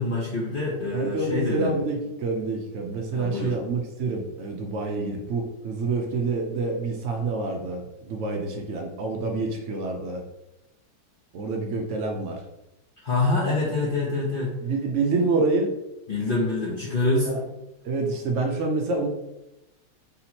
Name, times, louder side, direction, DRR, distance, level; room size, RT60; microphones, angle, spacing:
voice 1, 0.0-1.7 3.1-3.5 13.0-14.5 16.1-17.4, left 2 dB, 70° left, -5 dB, 0.5 m, -25 dB
voice 2, 0.9-10.2 11.3-12.4 14.6-15.7 17.3-17.4 17.8-19.1, right 3 dB, 85° right, 2 dB, 0.6 m, -27 dB
3.5 x 2.9 x 4.1 m, 0.92 s
omnidirectional pair, 2.0 m